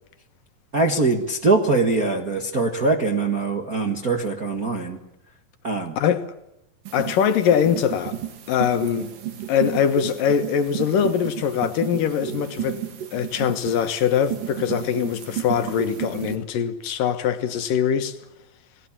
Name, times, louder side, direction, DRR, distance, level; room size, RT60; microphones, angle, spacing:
voice 1, 0.7-5.0 5.6-6.0, right 3 dB, 40° right, 1.4 m, -22 dB
voice 2, 6.0-6.3 6.9-8.2 8.5-9.1 9.5-12.8 13.1-18.2, left 8 dB, 70° left, 2.8 m, -22 dB
sound 1, 6.9-16.4, right 11 dB, 65° right, 3.8 m, -33 dB
29.5 x 19.0 x 7.3 m
omnidirectional pair, 4.3 m